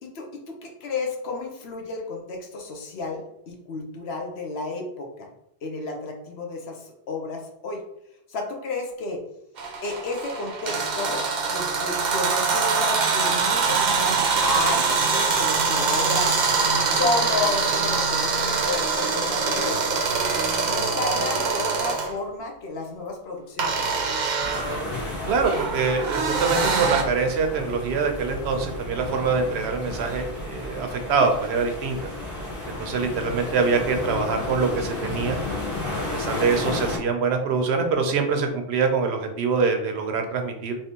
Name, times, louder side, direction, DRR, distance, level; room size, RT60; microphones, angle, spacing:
voice 1, 0.0-5.3 5.6-7.8 8.3-9.2 9.8-11.2 11.5-16.4 16.9-20.0 20.7-23.8, left 3 dB, 80° left, 2 dB, 1.0 m, -31 dB
sound 1, 9.6-22.1 23.6-27.0, right 4 dB, 55° right, 0.6 m, -24 dB
sound 2, 24.4-37.0, left 2 dB, 60° left, 1.6 m, -32 dB
voice 2, 25.3-32.1 32.7-35.4 36.1-40.8, right 4 dB, 90° right, 5 dB, 0.9 m, -24 dB
3.3 x 2.9 x 2.9 m, 0.80 s
omnidirectional pair, 1.0 m